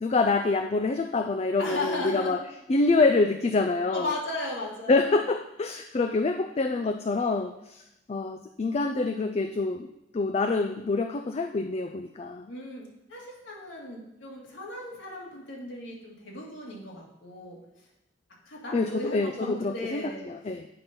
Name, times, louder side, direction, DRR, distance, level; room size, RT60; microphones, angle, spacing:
voice 1, 0.0-2.4 2.7-4.1 4.9-7.8 8.1-9.9 10.1-12.5 18.7-20.7, left 3 dB, 35° left, 7 dB, 0.4 m, -26 dB
voice 2, 1.6-2.4 3.9-5.2 12.5-17.6 18.4-20.2, left 2 dB, 85° left, -3 dB, 2.3 m, -36 dB
8.5 x 5.6 x 5.3 m, 0.88 s
head